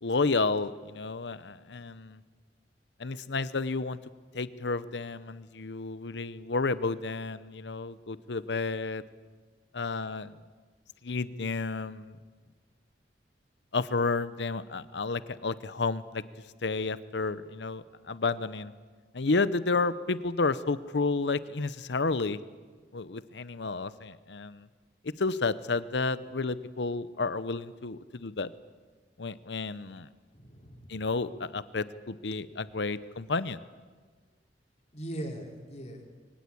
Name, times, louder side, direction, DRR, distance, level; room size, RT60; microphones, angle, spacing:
voice 1, 0.0-2.2 3.0-4.0 4.3-9.0 9.7-10.3 11.0-12.2 13.7-16.2 16.6-18.7 19.1-22.4 22.9-24.7 25.0-28.5 29.2-30.1 30.9-33.6, left 3 dB, 75° left, 15 dB, 0.8 m, -31 dB
voice 2, 30.3-30.9 34.9-36.1, right 1 dB, 40° left, 2 dB, 3.6 m, -40 dB
23.5 x 18.0 x 8.6 m, 1.4 s
head